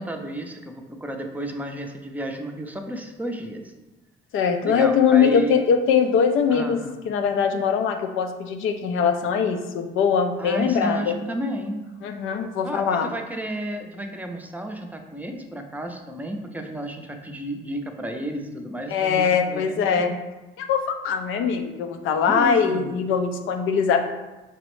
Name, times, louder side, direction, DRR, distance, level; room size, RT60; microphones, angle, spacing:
voice 1, 0.0-3.7 4.6-5.6 6.5-7.0 10.4-11.9 12.6-20.0 22.2-22.9, right 1 dB, 10° right, 4 dB, 0.4 m, -32 dB
voice 2, 4.3-11.2 12.0-13.1 18.9-20.2 20.6-24.1, left 6 dB, 85° left, 6 dB, 0.5 m, -22 dB
5.7 x 2.0 x 3.0 m, 1.1 s
cardioid pair, 90°, 20 cm